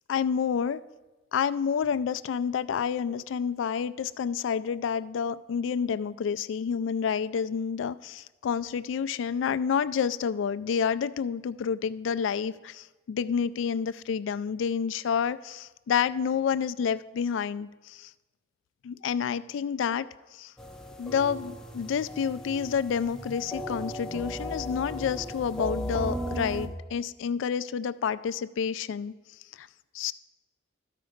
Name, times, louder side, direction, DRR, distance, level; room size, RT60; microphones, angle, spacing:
voice 1, 0.1-0.8 1.3-18.1 18.8-20.5 21.0-29.1 29.5-29.7 29.9-30.1, left 7 dB, 70° left, 15 dB, 0.3 m, -29 dB
sound 1, 20.6-26.7, equal, 5° left, 0.5 m, -36 dB
12.5 x 5.0 x 5.1 m, 1.2 s
head